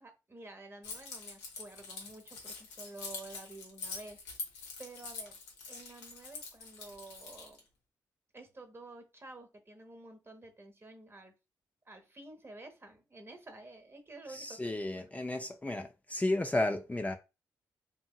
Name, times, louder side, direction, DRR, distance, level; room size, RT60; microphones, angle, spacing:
voice 1, 0.0-4.2 4.5-5.4 5.7-7.7 8.3-11.3 11.8-15.1, right 2 dB, 30° right, 0.9 m, -51 dB
Keys jangling, 0.8-7.6, left 4 dB, 90° left, 0.8 m, -45 dB
voice 2, 14.3-17.2, left 2 dB, 20° left, 0.4 m, -33 dB
2.8 x 2.7 x 2.3 m
supercardioid pair, 45°, 8 cm